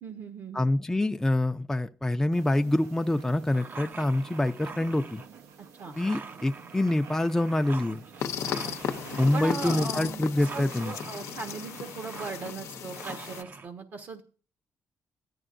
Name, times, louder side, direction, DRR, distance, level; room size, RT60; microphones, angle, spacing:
voice 1, 0.0-0.7 5.8-6.0 8.4-8.9 9.3-14.2, right 4 dB, 65° right, 1.2 m, -39 dB
voice 2, 0.5-5.2 6.0-8.0 9.2-10.9, left 1 dB, 10° left, 0.5 m, -26 dB
sound 1, 2.3-13.4, right 6 dB, 85° right, 0.8 m, -49 dB
sound 2, 3.5-5.3 5.9-10.0 10.4-13.7, right 4 dB, 45° right, 0.7 m, -44 dB
sound 3, 8.2-13.4, left 8 dB, 80° left, 0.7 m, -35 dB
14.0 x 11.0 x 2.6 m
cardioid pair, 70°, 5 cm